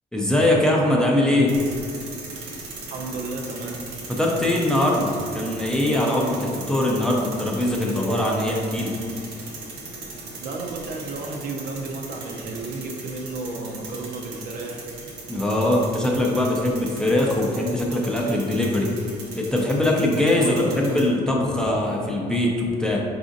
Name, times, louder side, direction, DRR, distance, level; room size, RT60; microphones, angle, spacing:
voice 1, 0.1-1.5 4.1-8.9 15.3-18.9 19.3-23.0, left 1 dB, 5° left, -3 dB, 0.5 m, -22 dB
sound 1, 1.5-21.0, right 3 dB, 85° right, 0.8 m, -38 dB
voice 2, 2.9-3.8 10.4-14.8 20.3-20.8, right 3 dB, 60° right, 1 dB, 0.5 m, -33 dB
4.8 x 2.5 x 2.5 m, 2.2 s
cardioid pair, 110°, 17 cm